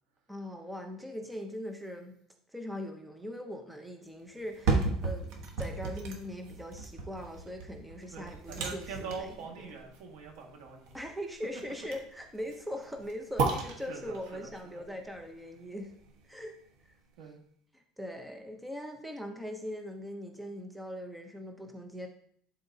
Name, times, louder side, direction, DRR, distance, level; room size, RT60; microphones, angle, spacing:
voice 1, 0.3-2.1 2.5-9.7 10.9-16.0 16.2-16.6 17.7-22.1, equal, 5° right, 3 dB, 0.6 m, -41 dB
sound 1, 4.4-16.4 16.8-16.9, right 3 dB, 60° right, 1.2 m, -35 dB
voice 2, 8.1-10.9 13.9-14.8 17.2-17.4, right 5 dB, 75° right, 1 dB, 1.7 m, -43 dB
11.5 x 4.0 x 2.7 m, 0.63 s
cardioid pair, 170°, 0 cm